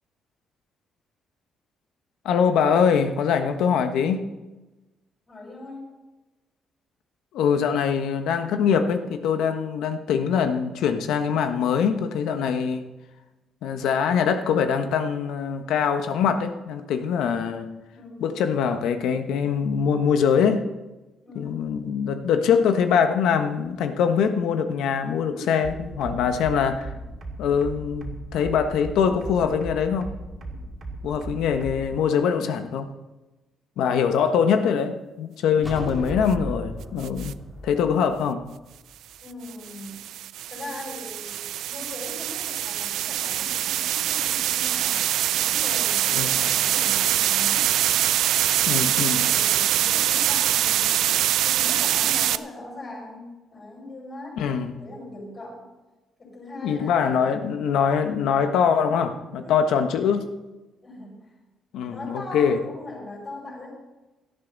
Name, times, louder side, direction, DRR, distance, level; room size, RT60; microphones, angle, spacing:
voice 1, 2.2-4.2 7.3-12.8 13.6-17.7 18.2-20.7 21.3-26.9 27.4-30.1 31.0-32.9 33.8-37.3 37.6-38.4 46.1-46.3 48.7-49.3 54.4-54.8 56.6-60.3 61.7-62.6, left 7 dB, 80° left, 8 dB, 1.3 m, -23 dB
voice 2, 5.3-5.9 17.9-18.3 21.2-21.8 25.3-25.7 26.9-27.0 30.5-30.6 39.2-40.0 40.5-45.0 45.3-47.7 48.9-50.9 51.4-54.4 54.8-55.6 56.2-57.3 59.4-59.6 60.8-61.3 61.8-63.7, left 2 dB, 25° left, -2 dB, 6.5 m, -40 dB
sound 1, 25.6-32.0, right 2 dB, 30° right, 2.4 m, -36 dB
sound 2, 35.6-39.1, left 1 dB, 5° left, 2.5 m, -35 dB
sound 3, 37.0-37.3 39.5-52.4, right 12 dB, 75° right, 0.5 m, -24 dB
17.5 x 12.5 x 4.1 m, 1.1 s
cardioid pair, 160°, 0 cm